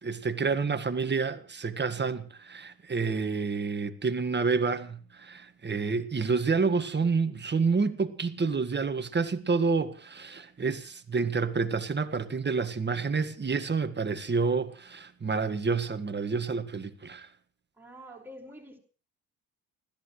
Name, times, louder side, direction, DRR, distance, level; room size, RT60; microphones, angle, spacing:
voice 1, 0.0-17.3, right 4 dB, 25° right, 1.8 m, -29 dB
voice 2, 17.8-18.8, equal, 5° right, 5.4 m, -47 dB
29.0 x 14.0 x 3.2 m
supercardioid pair, 65°, 39 cm